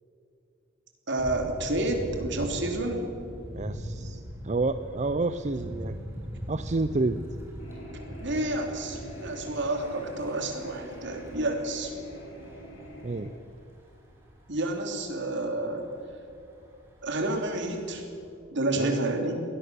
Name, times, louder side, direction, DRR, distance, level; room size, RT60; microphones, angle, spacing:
voice 1, 1.1-3.0 8.2-11.9 14.5-15.9 17.0-18.0 18.5-19.4, right 2 dB, 65° right, 4 dB, 3.3 m, -29 dB
Thunder / Bicycle, 1.2-18.3, equal, 10° right, 5.0 m, -42 dB
voice 2, 3.5-6.0 6.5-7.2 13.0-13.3 18.8-19.0, right 3 dB, 35° right, 10 dB, 0.6 m, -29 dB
sound 1, 7.6-13.3, equal, 75° left, 5.2 m, -45 dB
21.5 x 17.5 x 7.0 m, 2.5 s
head